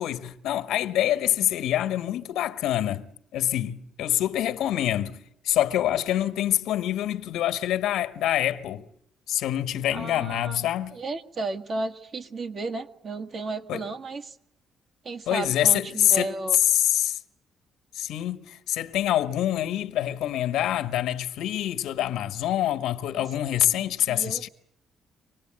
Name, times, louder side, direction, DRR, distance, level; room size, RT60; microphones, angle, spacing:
voice 1, 0.0-8.8 9.3-10.9 13.7-13.8 15.3-17.2 17.9-24.5, left 12 dB, 90° left, 1.5 m, -26 dB
voice 2, 9.9-14.4 15.0-16.6 23.1-23.3 23.7-24.4, right 3 dB, 50° right, 1.7 m, -34 dB
25.0 x 19.0 x 9.0 m
cardioid pair, 90°, 0 cm